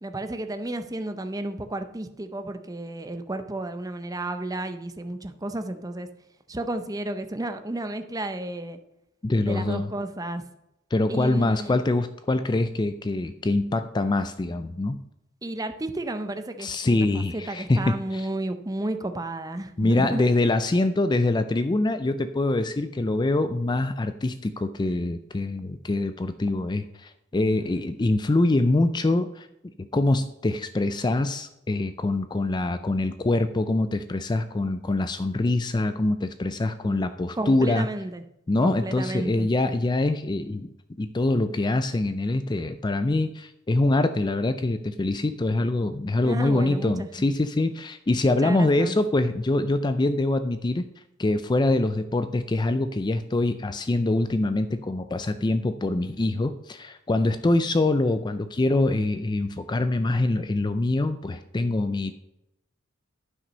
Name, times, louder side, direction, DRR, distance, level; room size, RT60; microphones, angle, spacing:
voice 1, 0.0-6.1 6.5-8.8 9.4-10.4 11.1-11.8 15.4-20.5 36.8-37.1 37.3-38.2 38.6-39.5 46.2-47.3 48.3-49.0, right 1 dB, 15° right, 8 dB, 0.6 m, -32 dB
voice 2, 9.2-9.9 10.9-15.0 16.6-18.3 19.8-29.5 29.9-37.9 38.5-40.7 41.0-50.8 51.2-62.1, left 2 dB, 20° left, 10 dB, 0.4 m, -24 dB
11.0 x 6.1 x 5.3 m, 0.87 s
head